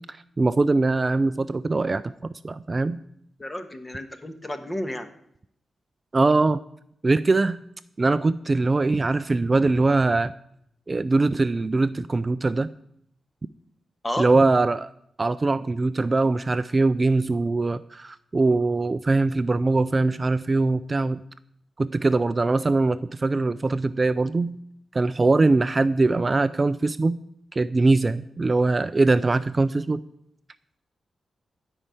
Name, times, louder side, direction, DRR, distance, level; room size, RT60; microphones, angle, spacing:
voice 1, 0.1-3.0 6.1-6.6 7.0-7.6 8.0-10.3 10.9-12.7 14.2-14.9 15.2-21.2 21.8-24.6 24.9-27.2 27.5-30.0, right 3 dB, 30° right, 13 dB, 0.4 m, -22 dB
voice 2, 3.4-5.1 14.0-14.3, left 1 dB, 20° left, 8 dB, 1.4 m, -31 dB
13.5 x 5.5 x 9.0 m, 0.72 s
cardioid pair, 90°, 0 cm